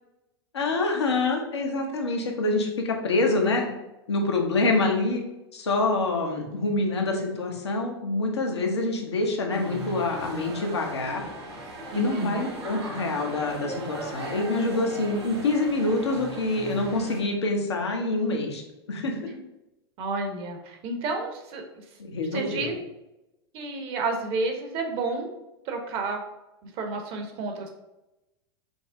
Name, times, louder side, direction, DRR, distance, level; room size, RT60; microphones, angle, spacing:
voice 1, 0.5-3.7 4.1-5.2 5.5-11.2 11.9-18.6 18.9-19.3 22.0-22.7, left 2 dB, 85° left, 2 dB, 0.9 m, -26 dB
sound 1, 9.5-17.2, right 1 dB, 80° right, 1.1 m, -38 dB
voice 2, 11.9-12.4 19.3-19.4 20.0-21.6 22.3-22.7 23.5-25.3 25.6-26.2 26.6-27.7, right 3 dB, 45° right, 3 dB, 0.9 m, -31 dB
5.2 x 2.1 x 3.6 m, 0.95 s
hypercardioid pair, 95°, 14 cm